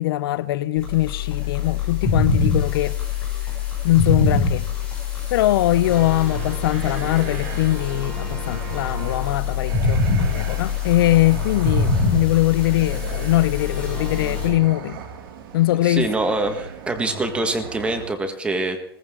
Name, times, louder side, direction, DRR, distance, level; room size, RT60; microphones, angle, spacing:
voice 1, 0.0-3.0 3.8-4.7 5.3-15.0 15.5-16.1, left 16 dB, 65° left, 0.5 m, -21 dB
sound 1, 0.8-14.5, left 5 dB, 5° left, 6.7 m, -24 dB
sound 2, 5.7-18.1, right 6 dB, 60° right, 2.5 m, -36 dB
voice 2, 15.8-18.8, right 2 dB, 10° right, 1.5 m, -24 dB
18.5 x 15.0 x 3.8 m
supercardioid pair, 150°, 13 cm